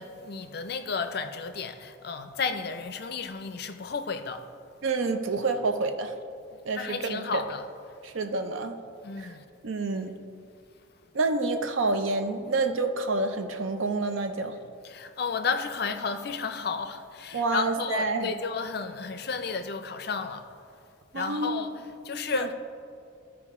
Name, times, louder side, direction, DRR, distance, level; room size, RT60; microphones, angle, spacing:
voice 1, 0.0-4.4 6.7-7.7 9.0-9.4 14.8-20.5 21.1-21.7 22.0-22.5, left 5 dB, 50° left, 8 dB, 0.5 m, -32 dB
voice 2, 4.8-6.1 6.7-7.4 8.0-8.7 9.2-9.3 9.6-10.1 11.1-14.6 17.3-18.3 21.1-21.8 22.3-22.5, right 3 dB, 75° right, 7 dB, 0.6 m, -28 dB
13.5 x 4.8 x 3.6 m, 2.4 s
head